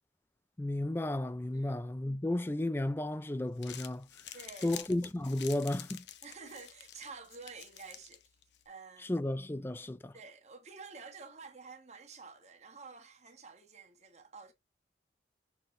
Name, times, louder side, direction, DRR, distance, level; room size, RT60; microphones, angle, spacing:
voice 1, 0.6-4.1 4.6-6.0 9.0-10.1, left 1 dB, 15° left, 0.3 m, -33 dB
Crumpling crinkling, 3.4-8.7, left 11 dB, 85° left, 0.8 m, -49 dB
voice 2, 4.3-4.7 6.2-8.2 8.6-9.1 10.1-14.5, right 4 dB, 40° right, 1.4 m, -50 dB
6.5 x 4.4 x 3.5 m
head